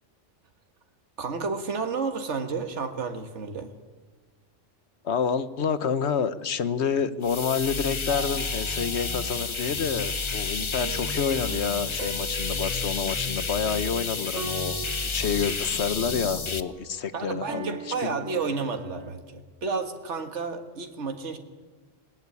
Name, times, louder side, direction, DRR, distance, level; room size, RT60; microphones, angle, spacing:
voice 1, 1.2-3.7 17.1-21.4, right 4 dB, 70° right, 6 dB, 1.9 m, -31 dB
voice 2, 5.0-14.8 15.0-18.3, left 6 dB, 65° left, 13 dB, 1.3 m, -28 dB
sound 1, 7.2-16.6, left 4 dB, 30° left, 0.7 m, -30 dB
sound 2, 8.1-19.2, right 5 dB, 85° right, 1.4 m, -42 dB
19.5 x 19.0 x 9.9 m, 1.3 s
omnidirectional pair, 1.3 m